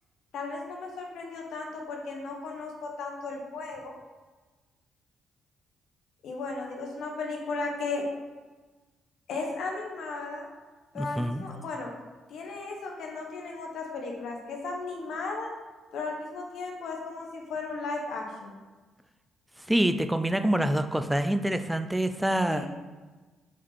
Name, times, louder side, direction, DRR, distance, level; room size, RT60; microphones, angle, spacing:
voice 1, 0.3-3.9 6.2-8.1 9.3-10.5 10.9-11.9 12.3-15.5 15.9-18.5 22.5-22.7, left 3 dB, 75° left, 1 dB, 1.1 m, -35 dB
voice 2, 11.0-11.5 19.6-22.7, right 1 dB, 5° right, 9 dB, 0.5 m, -26 dB
7.6 x 4.2 x 4.1 m, 1.3 s
cardioid pair, 90°, 0 cm